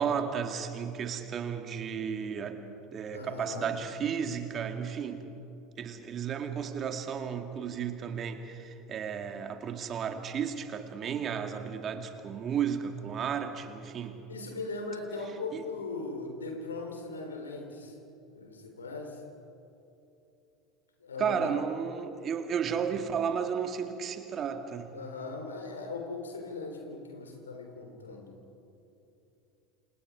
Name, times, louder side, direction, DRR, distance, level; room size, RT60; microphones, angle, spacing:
voice 1, 0.0-2.6 2.9-5.3 5.8-14.2 15.5-15.6 21.2-24.9, right 7 dB, 35° right, 6 dB, 2.3 m, -33 dB
voice 2, 3.1-3.7 14.3-17.9 18.3-19.2 21.0-21.6 24.9-28.3, left 3 dB, 80° left, 3 dB, 3.7 m, -39 dB
28.5 x 28.0 x 4.9 m, 2.9 s
figure-of-eight pair, 75°, 0 cm